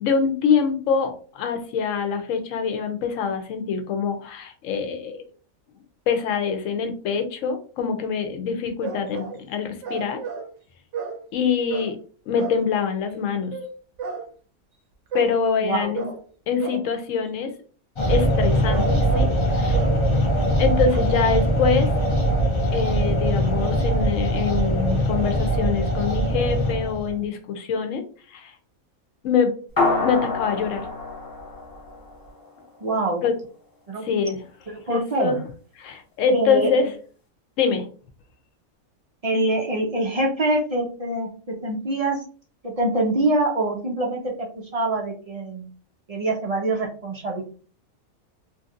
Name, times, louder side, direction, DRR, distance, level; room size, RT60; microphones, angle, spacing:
voice 1, 0.0-5.2 6.1-10.2 11.3-12.0 12.3-13.5 15.1-16.0 16.5-17.5 18.1-19.3 19.5-19.8 20.6-21.9 22.7-28.5 29.2-29.5 30.0-30.9 33.2-33.3 34.0-34.4 34.9-35.4 35.8-36.9 37.6-37.9, left 6 dB, 70° left, 7 dB, 1.0 m, -24 dB
sound 1, 8.8-9.4 9.8-10.5 10.9-11.2 11.7-12.0 12.4-12.6 13.5-13.7 14.0-14.3 15.1-15.4 15.9-16.2 16.6-16.9 18.5-19.4 19.7-20.0 20.9-21.2, right 5 dB, 65° right, 0.9 m, -32 dB
voice 2, 15.6-15.9 32.8-33.2 33.9-34.0 34.7-35.3 36.3-36.7 39.2-42.2 42.6-44.5 44.7-45.7 46.1-47.4, right 2 dB, 50° right, -1 dB, 0.4 m, -24 dB
sound 2, 18.0-27.2, right 1 dB, 50° left, 0.3 m, -22 dB
sound 3, 29.8-32.5, left 3 dB, 20° left, 0.8 m, -26 dB
3.0 x 2.6 x 2.4 m, 0.40 s
omnidirectional pair, 1.4 m